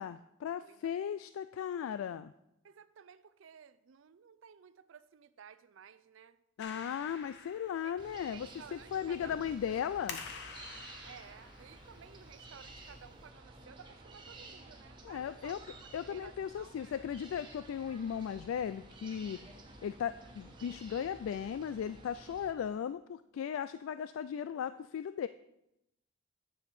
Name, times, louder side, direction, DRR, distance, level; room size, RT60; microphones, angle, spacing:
voice 1, 0.0-2.3 6.6-10.2 15.0-15.6 15.9-19.4 19.8-25.3, left 8 dB, 85° left, 0.3 m, -37 dB
voice 2, 2.6-6.4 7.2-7.3 7.8-9.3 9.7-9.8 11.0-15.6 16.1-17.0, right 7 dB, 70° right, 0.4 m, -55 dB
Clapping, 6.6-13.3, left 5 dB, 60° left, 1.0 m, -50 dB
sound 1, 8.0-22.5, right 2 dB, 25° right, 1.2 m, -53 dB
9.7 x 7.2 x 4.3 m
head